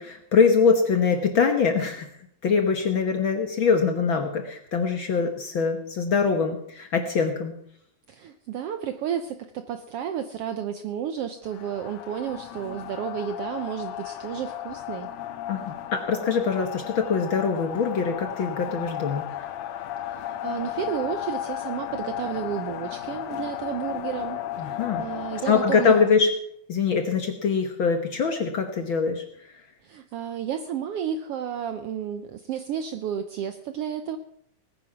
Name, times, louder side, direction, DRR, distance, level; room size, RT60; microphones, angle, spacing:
voice 1, 0.0-2.1 2.4-7.5 15.5-19.3 24.6-25.1 25.5-26.3 26.7-29.2, left 5 dB, 55° left, 6 dB, 1.5 m, -23 dB
voice 2, 8.1-15.1 20.0-26.0 29.8-34.2, right 9 dB, 80° right, 9 dB, 1.3 m, -32 dB
sound 1, 11.4-26.1, left 11 dB, 80° left, 2.3 m, -35 dB
19.5 x 9.6 x 5.9 m, 0.68 s
omnidirectional pair, 3.5 m